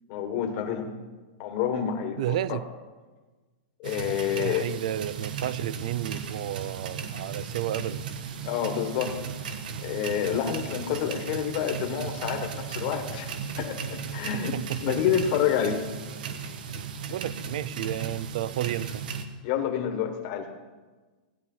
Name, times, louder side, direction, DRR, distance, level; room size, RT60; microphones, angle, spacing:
voice 1, 0.1-0.9 1.4-2.6 3.8-4.6 8.4-15.8 19.4-20.5, left 9 dB, 30° left, 5 dB, 1.5 m, -29 dB
voice 2, 2.2-2.6 4.3-8.1 14.3-15.0 17.1-19.0, right 12 dB, 45° right, 19 dB, 0.4 m, -32 dB
sound 1, 3.8-19.2, right 6 dB, 60° right, 1.3 m, -36 dB
17.0 x 9.7 x 5.6 m, 1.3 s
supercardioid pair, 180°, 5 cm